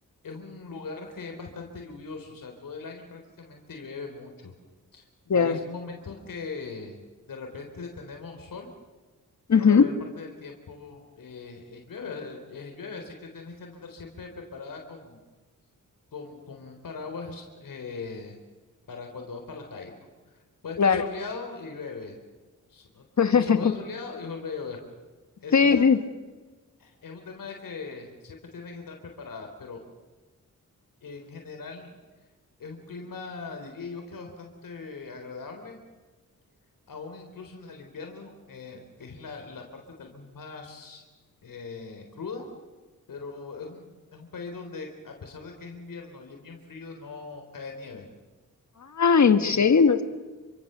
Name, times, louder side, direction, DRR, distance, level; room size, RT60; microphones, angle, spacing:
voice 1, 0.2-4.5 4.9-5.0 5.3-7.0 7.3-8.7 9.5-15.2 16.1-18.4 18.9-20.1 20.6-22.2 22.7-23.1 23.4-24.8 25.4-26.0 26.8-29.8 31.0-31.9 32.6-35.8 36.9-41.0 41.4-42.5 43.1-48.1 49.5-49.8, left 4 dB, 80° left, 3 dB, 4.0 m, -40 dB
voice 2, 9.5-9.9 20.8-21.0 23.2-23.7 25.5-26.0 48.9-50.0, left 6 dB, 60° left, 9 dB, 1.8 m, -19 dB
28.0 x 25.0 x 6.9 m, 1.3 s
wide cardioid pair, 90°, 33 cm